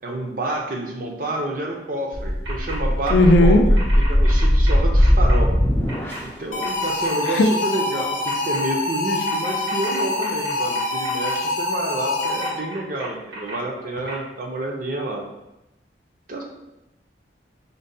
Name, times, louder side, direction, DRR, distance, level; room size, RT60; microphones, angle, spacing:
voice 1, 0.0-3.8 4.1-5.5 6.4-15.2 16.3-16.4, right 2 dB, 50° right, 0 dB, 0.5 m, -29 dB
sound 1, 2.1-6.5, equal, 10° left, 0.4 m, -19 dB
sound 2, 2.4-2.8 3.0-3.3 3.7-5.4 5.9-6.2 6.6-7.3 8.2-8.6 9.2-11.3 12.2-13.5 14.1-14.2, right 2 dB, 90° right, 1.1 m, -36 dB
voice 2, 3.1-3.6 7.3-7.5, left 1 dB, 80° left, 6 dB, 0.4 m, -14 dB
sound 3, 6.5-12.8, left 2 dB, 45° left, 0.7 m, -25 dB
5.1 x 2.1 x 2.6 m, 0.94 s
head